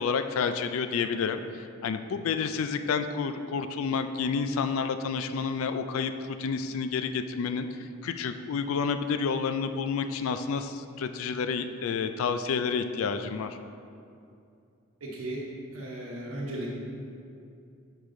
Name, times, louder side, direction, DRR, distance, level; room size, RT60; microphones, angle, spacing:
voice 1, 0.0-7.7 8.0-13.6, left 5 dB, 75° left, 9 dB, 0.3 m, -29 dB
voice 2, 15.0-15.5 15.7-16.7, right 1 dB, 80° right, -5 dB, 1.0 m, -36 dB
6.7 x 4.7 x 3.7 m, 2.5 s
head